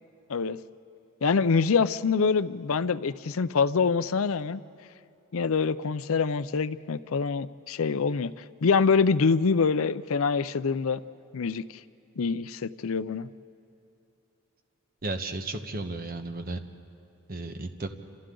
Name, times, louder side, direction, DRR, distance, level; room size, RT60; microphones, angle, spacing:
voice 1, 1.2-4.6 5.3-11.0 11.3-11.6 12.2-13.3, left 5 dB, 65° left, 15 dB, 0.5 m, -25 dB
voice 2, 15.0-16.6 17.3-17.9, right 2 dB, 40° right, 6 dB, 1.2 m, -34 dB
28.5 x 27.5 x 3.9 m, 2.7 s
head